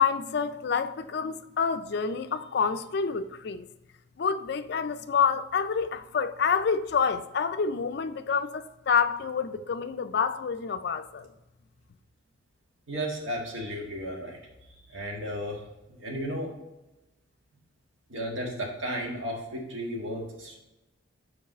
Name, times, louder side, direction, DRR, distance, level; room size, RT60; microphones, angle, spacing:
voice 1, 0.0-3.7 4.2-11.3, left 6 dB, 55° left, 0.4 m, -28 dB
voice 2, 12.9-14.4 14.9-15.6 15.9-16.5 18.1-20.6, equal, 75° right, 1.5 m, -34 dB
4.8 x 4.7 x 5.9 m
head